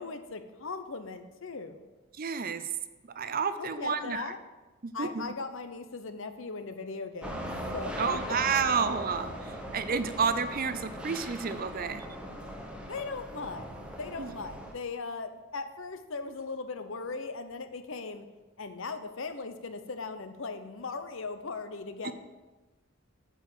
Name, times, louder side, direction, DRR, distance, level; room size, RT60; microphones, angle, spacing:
voice 1, 0.0-1.9 3.6-4.4 4.9-7.5 7.7-8.2 12.9-18.3 18.6-22.1, left 4 dB, 60° left, 9 dB, 0.8 m, -38 dB
voice 2, 2.2-2.6 3.2-4.3 4.8-5.3 8.0-12.1 14.2-14.3 22.0-22.1, right 5 dB, 40° right, 11 dB, 0.5 m, -30 dB
sound 1, 7.2-14.7, equal, 5° right, 1.0 m, -40 dB
9.0 x 5.0 x 7.8 m, 1.1 s
head